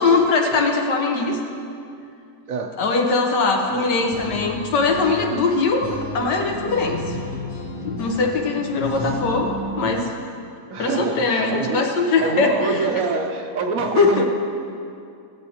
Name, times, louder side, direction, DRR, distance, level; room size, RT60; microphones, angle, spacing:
voice 1, 0.0-1.4 2.8-7.2 7.8-9.5 9.8-10.1 10.8-12.9 14.0-14.2, left 4 dB, 80° left, 2 dB, 1.7 m, -21 dB
voice 2, 2.5-2.8 10.7-14.2, right 4 dB, 65° right, 4 dB, 0.9 m, -26 dB
sound 1, 3.7-10.0, left 2 dB, 60° left, 1.6 m, -33 dB
17.0 x 7.8 x 2.9 m, 2.4 s
omnidirectional pair, 1.8 m